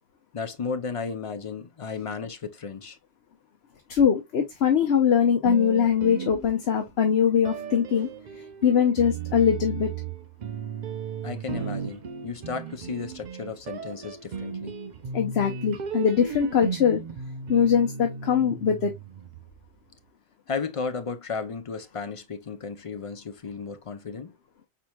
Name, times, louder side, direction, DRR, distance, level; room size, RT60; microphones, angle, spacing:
voice 1, 0.3-3.0 11.2-14.7 20.5-24.3, left 5 dB, 40° left, 0.5 m, -34 dB
voice 2, 3.9-8.1 8.6-9.9 15.1-17.0 17.5-18.9, left 7 dB, 65° left, 1.0 m, -22 dB
sound 1, 5.4-6.9 7.4-19.7, right 6 dB, 50° right, 0.6 m, -36 dB
4.7 x 4.3 x 2.2 m
omnidirectional pair, 1.2 m